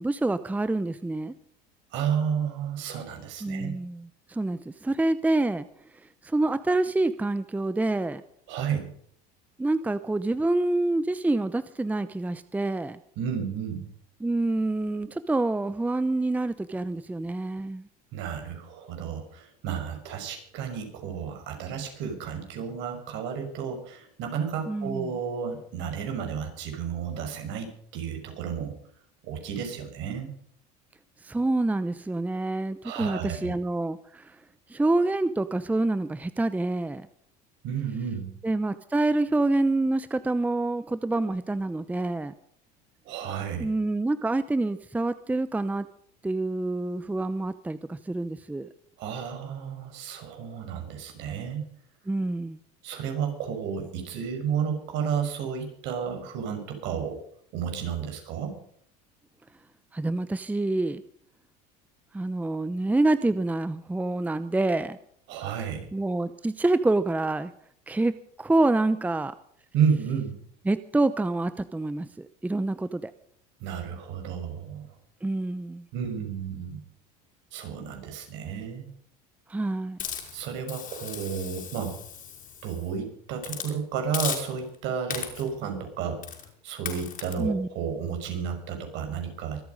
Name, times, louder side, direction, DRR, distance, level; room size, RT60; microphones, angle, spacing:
voice 1, 0.0-1.3 3.4-5.7 6.2-8.2 9.6-13.0 14.2-17.9 24.7-25.2 31.2-34.4 34.7-37.1 38.4-42.3 43.6-45.9 46.2-48.7 52.1-52.6 59.9-61.0 62.1-65.0 65.9-67.5 67.9-69.3 70.7-73.1 75.2-75.8 79.5-80.0 87.4-87.7, right 2 dB, 5° right, 14 dB, 0.7 m, -27 dB
voice 2, 1.9-3.7 8.5-8.9 13.2-13.9 18.1-28.7 29.2-30.3 32.8-33.5 37.6-38.3 43.1-43.7 49.0-51.6 52.8-57.2 57.5-58.6 65.3-65.8 69.7-70.4 73.6-74.9 75.9-76.8 77.5-78.9 80.3-82.0 82.6-86.2 86.6-89.6, right 7 dB, 65° right, 4 dB, 5.8 m, -32 dB
Hiss, 80.0-82.9 83.4-83.7 84.1-84.7 85.1-85.6 86.2-86.5 86.9-87.3, left 8 dB, 45° left, 5.8 m, -36 dB
24.5 x 8.6 x 5.3 m, 0.64 s
supercardioid pair, 105°, 21 cm